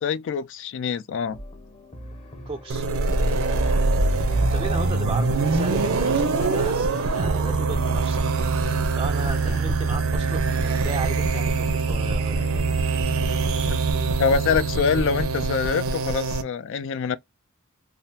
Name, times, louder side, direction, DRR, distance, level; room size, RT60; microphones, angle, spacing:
voice 1, 0.0-1.4 13.7-13.8 14.2-17.2, left 6 dB, 55° left, 0.3 m, -25 dB
sound 1, 1.2-13.7, equal, 25° left, 0.8 m, -42 dB
voice 2, 2.5-2.9 4.5-8.3 8.9-12.7, right 3 dB, 20° right, 0.4 m, -35 dB
sound 2, 2.7-15.3, equal, 75° left, 1.3 m, -41 dB
sound 3, 2.7-16.4, right 3 dB, 65° right, 0.6 m, -23 dB
3.6 x 2.4 x 2.7 m
head